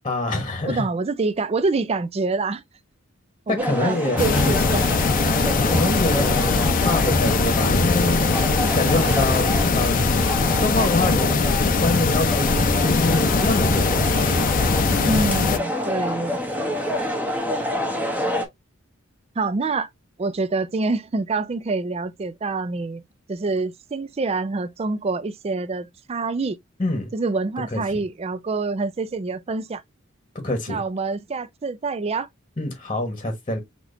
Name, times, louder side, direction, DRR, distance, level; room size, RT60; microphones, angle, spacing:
voice 1, 0.0-0.8 3.5-4.7 5.6-8.3 8.8-10.3 10.6-15.1 26.8-27.1 27.7-27.8 30.3-30.8 32.6-33.6, left 2 dB, 25° left, 1.1 m, -26 dB
voice 2, 0.7-2.6 3.5-4.8 15.0-16.4 19.4-19.9 20.2-23.0 23.3-26.6 27.1-29.8 30.7-32.3, right 3 dB, 30° right, 0.4 m, -26 dB
sound 1, 3.6-18.5, equal, 10° right, 0.9 m, -27 dB
sound 2, 4.2-15.6, left 4 dB, 45° left, 0.5 m, -21 dB
6.1 x 2.9 x 2.6 m
head